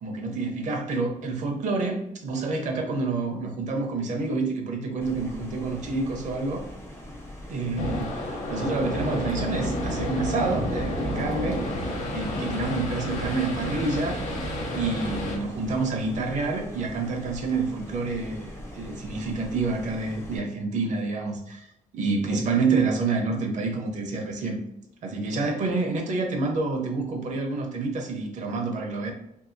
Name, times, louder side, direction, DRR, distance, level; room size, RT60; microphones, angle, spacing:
voice 1, 0.0-6.7 7.5-11.6 12.1-14.2 14.7-21.7 21.9-24.6 25.0-29.1, right 3 dB, 60° right, 3 dB, 0.7 m, -28 dB
sound 1, 5.0-20.4, left 1 dB, 20° left, 0.5 m, -42 dB
sound 2, 7.8-15.4, equal, 55° left, 0.8 m, -30 dB
2.7 x 2.6 x 2.5 m, 0.80 s
cardioid pair, 130°, 14 cm